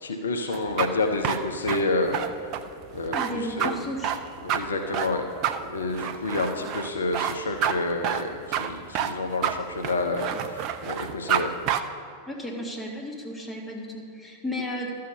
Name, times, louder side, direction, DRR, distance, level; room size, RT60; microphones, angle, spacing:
voice 1, 0.0-2.2 2.9-3.7 4.4-5.2 5.7-11.5, left 2 dB, 70° left, 4 dB, 0.7 m, -29 dB
sound 1, 0.5-11.4 11.7-11.8, right 10 dB, 40° right, 0.5 m, -28 dB
voice 2, 3.1-4.1 12.3-14.9, left 1 dB, 10° left, -2 dB, 1.8 m, -33 dB
12.5 x 6.7 x 5.2 m, 2.3 s
figure-of-eight pair, 90°, 0 cm